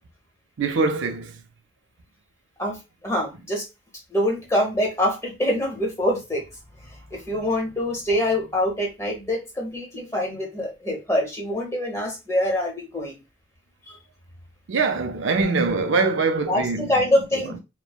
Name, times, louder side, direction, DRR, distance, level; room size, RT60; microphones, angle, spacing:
voice 1, 0.6-1.3 14.7-17.1, right 4 dB, 70° right, 0.4 m, -23 dB
voice 2, 3.0-3.6 4.1-6.4 6.8-13.1 13.9-14.0 16.5-17.5, left 1 dB, 15° left, 0.9 m, -25 dB
3.0 x 2.1 x 2.3 m
head